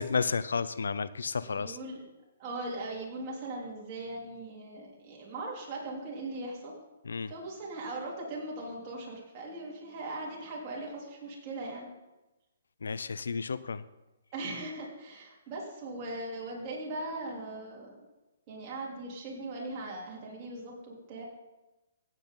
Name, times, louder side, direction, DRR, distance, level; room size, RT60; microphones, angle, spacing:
voice 1, 0.0-1.8 7.0-7.3 12.8-13.8, left 5 dB, 90° left, 16 dB, 0.5 m, -32 dB
voice 2, 1.4-2.0 2.4-6.7 7.3-11.9 14.3-18.0 18.5-21.2, right 2 dB, 30° right, -4 dB, 3.5 m, -39 dB
15.5 x 8.4 x 4.0 m, 1.1 s
hypercardioid pair, 150°, 0 cm